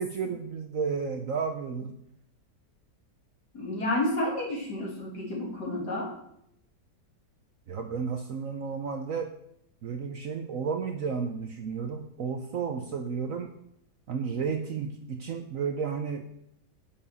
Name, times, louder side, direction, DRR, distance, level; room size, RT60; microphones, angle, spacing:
voice 1, 0.0-1.9 7.7-9.3 9.8-13.5 14.1-16.3, right 6 dB, 60° right, 5 dB, 1.0 m, -32 dB
voice 2, 3.5-6.1, left 1 dB, 65° left, -3 dB, 3.2 m, -30 dB
7.2 x 7.0 x 5.5 m, 0.75 s
omnidirectional pair, 1.9 m